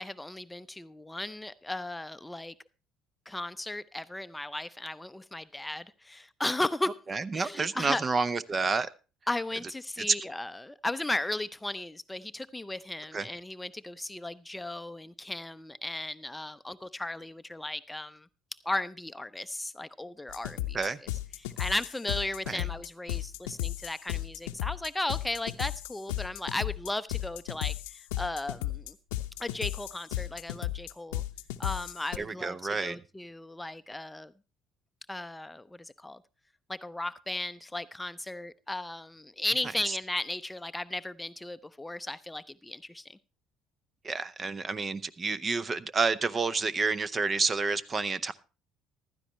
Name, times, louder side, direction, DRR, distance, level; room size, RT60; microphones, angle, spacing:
voice 1, 0.0-2.5 3.3-7.0 7.3-8.0 9.3-18.3 18.6-20.9 21.4-29.0 29.4-31.2 31.6-34.3 35.1-36.2 36.7-43.2, left 2 dB, 10° left, 0.6 m, -36 dB
voice 2, 7.1-8.9 10.0-10.1 13.1-13.3 20.7-21.0 22.5-22.6 32.2-33.0 39.9-40.0 44.0-48.3, right 4 dB, 35° right, 0.7 m, -29 dB
sound 1, 20.3-32.2, left 15 dB, 80° left, 0.7 m, -35 dB
15.0 x 12.5 x 3.1 m
hypercardioid pair, 60°, 0 cm